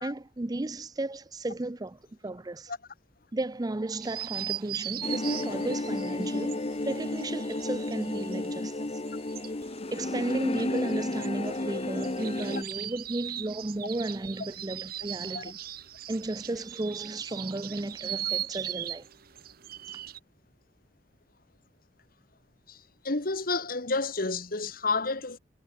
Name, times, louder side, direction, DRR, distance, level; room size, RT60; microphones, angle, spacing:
voice 1, 0.0-2.7 3.3-8.9 9.9-15.6 16.1-19.1, right 2 dB, 20° right, 0.6 m, -34 dB
sound 1, 4.0-8.6 8.8-20.2, right 11 dB, 55° right, 0.8 m, -39 dB
sound 2, 5.0-12.6, left 2 dB, 35° left, 0.8 m, -32 dB
voice 2, 23.0-25.4, left 3 dB, 55° left, 1.8 m, -30 dB
head